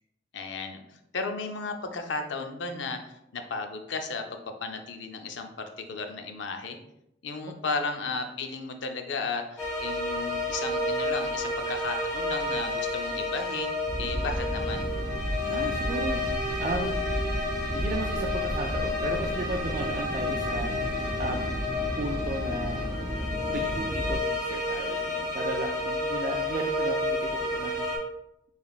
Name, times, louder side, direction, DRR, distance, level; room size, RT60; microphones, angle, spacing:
voice 1, 0.3-3.0 3.3-6.8 7.2-14.8, left 4 dB, 80° left, 5 dB, 0.5 m, -34 dB
sound 1, 9.6-28.0, left 2 dB, 15° left, 1.3 m, -31 dB
sound 2, 13.9-24.2, equal, 60° right, 1.5 m, -33 dB
voice 2, 15.5-17.1 17.7-21.6 22.0-22.8 23.5-27.9, right 2 dB, 40° right, 0 dB, 0.3 m, -35 dB
4.9 x 3.3 x 2.4 m, 0.81 s
head